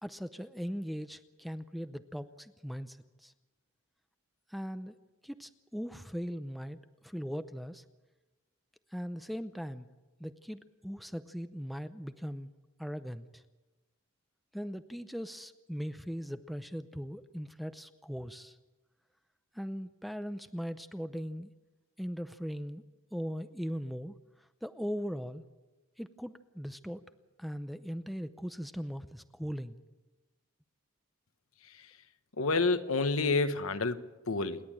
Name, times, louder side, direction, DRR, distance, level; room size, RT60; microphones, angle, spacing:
voice 1, 0.0-3.3 4.5-5.0 5.2-7.8 8.9-9.9 10.2-12.5 12.8-13.4 14.5-18.6 19.5-21.5 22.0-22.8 23.1-25.4 26.0-27.0 27.4-29.8, equal, ahead, 11 dB, 0.6 m, -39 dB
voice 2, 32.4-34.6, left 3 dB, 80° left, 10 dB, 1.2 m, -29 dB
27.5 x 11.0 x 8.8 m, 1.2 s
head